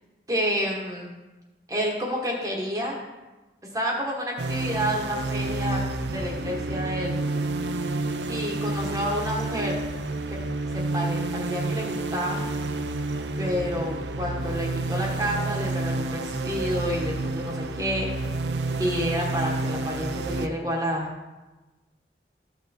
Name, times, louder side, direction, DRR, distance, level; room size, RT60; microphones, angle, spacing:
voice 1, 0.3-1.1 1.7-3.0 3.7-7.2 8.3-9.8 10.3-10.4 10.7-12.4 13.4-18.3 18.8-21.1, equal, 20° right, -1 dB, 1.3 m, -29 dB
sound 1, 4.4-20.5, right 2 dB, 75° right, 0.6 m, -29 dB
13.5 x 5.8 x 4.2 m, 1.1 s
head